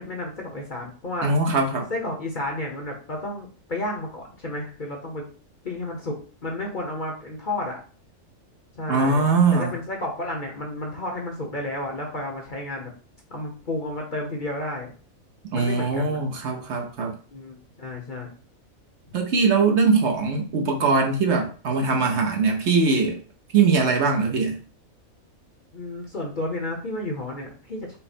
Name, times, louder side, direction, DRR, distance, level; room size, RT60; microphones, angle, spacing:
voice 1, 0.0-1.3 1.9-5.2 5.6-6.2 6.4-7.8 8.7-9.2 9.5-12.9 13.3-14.9 15.5-16.2 17.3-18.3 25.7-28.0, left 1 dB, 40° left, 0 dB, 0.9 m, -31 dB
voice 2, 1.2-1.9 8.9-9.7 15.5-17.1 19.1-23.2 23.5-24.6, right 4 dB, 60° right, 2 dB, 0.9 m, -21 dB
5.6 x 2.1 x 4.2 m, 0.40 s
omnidirectional pair, 1.5 m